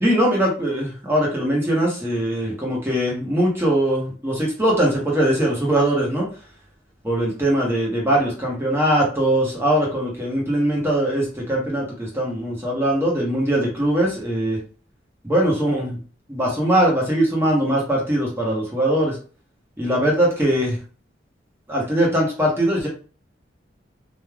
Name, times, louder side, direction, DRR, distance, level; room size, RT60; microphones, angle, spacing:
voice 1, 0.0-6.3 7.0-14.6 15.2-16.0 16.3-19.2 19.8-20.8 21.7-22.9, right 1 dB, 15° right, -3 dB, 0.9 m, -21 dB
3.2 x 2.3 x 2.3 m, 0.39 s
head